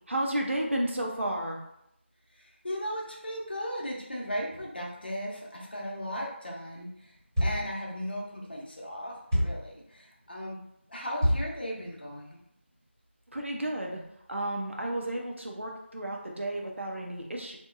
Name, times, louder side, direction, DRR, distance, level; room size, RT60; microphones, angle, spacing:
voice 1, 0.1-1.6 13.3-14.0 14.3-17.6, right 1 dB, 75° right, 0 dB, 0.6 m, -32 dB
voice 2, 2.3-10.6 10.9-12.4, equal, 50° left, -3 dB, 0.7 m, -37 dB
sound 1, 7.4-7.8 9.3-9.7 11.2-11.6, equal, 5° right, 1.1 m, -27 dB
2.8 x 2.2 x 2.4 m, 0.78 s
figure-of-eight pair, 170°, 7 cm